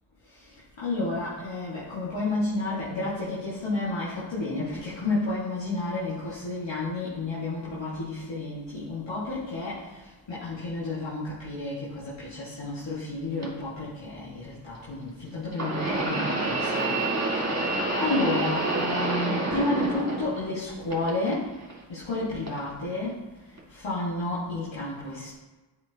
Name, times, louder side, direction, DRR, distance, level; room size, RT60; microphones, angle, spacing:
voice 1, 0.8-9.8 10.3-17.0 18.0-21.5 21.9-23.1 23.7-25.3, left 2 dB, 75° left, -10 dB, 1.9 m, -31 dB
sound 1, 13.4-13.5 15.5-20.6 20.9-21.7 22.5-22.6 23.6-23.7, right 2 dB, 35° right, 2.2 m, -28 dB
8.3 x 5.0 x 2.9 m, 1.2 s
cardioid pair, 45°, 45 cm